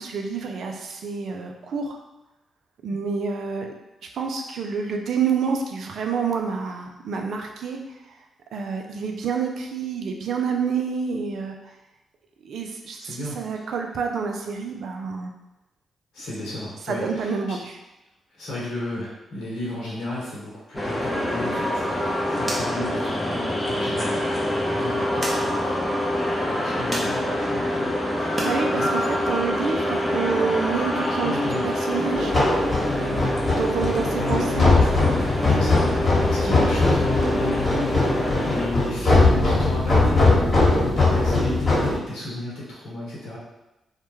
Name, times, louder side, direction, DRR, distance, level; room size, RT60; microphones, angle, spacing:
voice 1, 0.0-2.0 2.8-3.7 4.1-8.2 8.5-11.8 12.4-15.3 16.8-17.8 28.1-32.3 33.5-34.7, right 5 dB, 70° right, 3 dB, 0.3 m, -28 dB
voice 2, 13.0-13.4 16.1-17.6 18.4-25.8 26.4-28.0 28.7-28.9 31.2-31.7 33.0-33.3 34.2-35.9 36.2-43.4, left 1 dB, 75° left, -6 dB, 0.7 m, -33 dB
sound 1, 20.7-38.7, left 1 dB, 10° left, 0.7 m, -26 dB
sound 2, 21.4-28.6 28.9-30.1, right 1 dB, 30° right, 0.7 m, -38 dB
sound 3, 32.1-42.0, left 2 dB, 35° left, 1.1 m, -21 dB
2.2 x 2.1 x 3.0 m, 0.97 s
hypercardioid pair, 40°, 0 cm